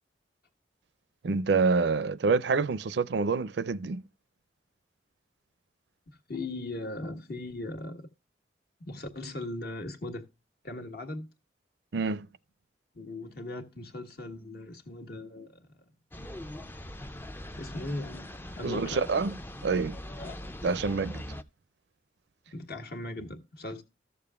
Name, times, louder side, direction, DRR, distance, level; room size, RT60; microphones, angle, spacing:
voice 1, 1.2-4.0 11.9-12.3 18.6-19.4 19.6-20.0 20.6-21.2, right 4 dB, 65° right, 0.4 m, -27 dB
voice 2, 6.3-8.1 8.8-10.2 10.6-11.3 12.9-15.7 17.6-18.3 18.6-19.0 20.2-20.4 22.5-23.8, left 2 dB, 55° left, 1.5 m, -38 dB
sound 1, 16.1-21.4, left 1 dB, 10° left, 0.4 m, -41 dB
14.5 x 6.8 x 2.3 m
head